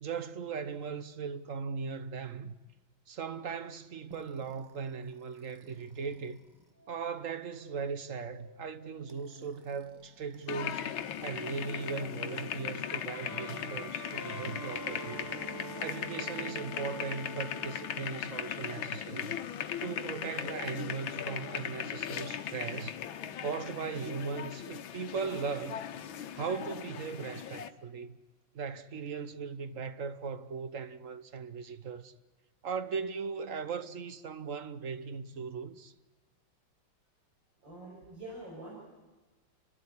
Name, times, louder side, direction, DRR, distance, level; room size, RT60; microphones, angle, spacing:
voice 1, 0.0-2.5 3.1-6.4 6.9-11.0 11.2-15.3 15.8-19.4 19.8-23.0 23.4-25.9 26.3-28.2 28.5-32.1 32.6-35.9, right 5 dB, 50° right, 1.2 m, -38 dB
sound 1, 4.1-11.3 11.6-18.0, right 3 dB, 15° right, 0.9 m, -49 dB
sound 2, 10.5-27.7, left 9 dB, 90° left, 1.8 m, -38 dB
voice 2, 37.6-38.7, right 1 dB, 70° right, 6.9 m, -45 dB
30.0 x 13.0 x 9.7 m
omnidirectional pair, 2.1 m